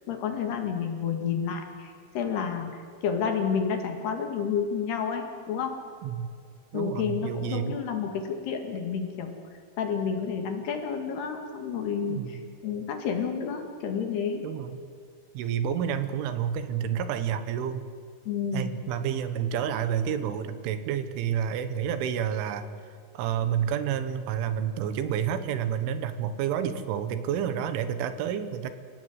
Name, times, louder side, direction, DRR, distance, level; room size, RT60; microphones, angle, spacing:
voice 1, 0.1-2.7 3.0-5.8 6.7-9.4 9.8-14.4 18.3-18.7, left 6 dB, 60° left, 4 dB, 3.7 m, -30 dB
voice 2, 6.7-7.8 12.1-12.5 14.4-14.8 15.4-17.9 18.5-22.7 23.2-28.7, right 8 dB, 80° right, 11 dB, 3.6 m, -29 dB
29.0 x 16.5 x 8.0 m, 2.2 s
omnidirectional pair, 5.7 m